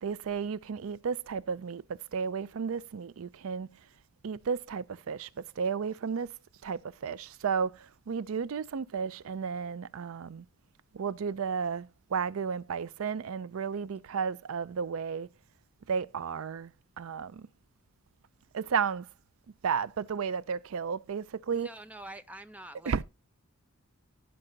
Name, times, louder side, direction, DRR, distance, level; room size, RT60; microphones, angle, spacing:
voice 1, 0.0-1.8 2.1-3.7 4.2-5.3 5.6-6.3 6.6-10.4 10.9-15.3 15.9-16.7 17.0-17.5 18.5-19.1 19.6-21.7 22.8-23.0, right 6 dB, 70° right, 0.4 m, -33 dB
voice 2, 21.5-23.0, right 1 dB, 5° right, 0.7 m, -46 dB
16.5 x 5.5 x 3.9 m
head